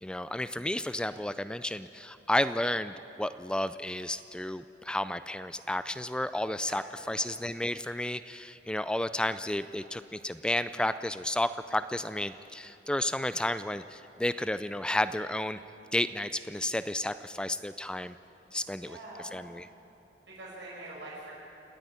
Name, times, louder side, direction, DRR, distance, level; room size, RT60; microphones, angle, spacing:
voice 1, 0.0-15.6 15.9-18.2 18.5-19.0 19.3-19.7, left 1 dB, 5° left, 13 dB, 0.3 m, -32 dB
voice 2, 6.7-7.3 18.5-19.4 20.3-21.3, right 2 dB, 85° right, -5 dB, 5.7 m, -45 dB
28.5 x 9.9 x 9.4 m, 2.9 s
head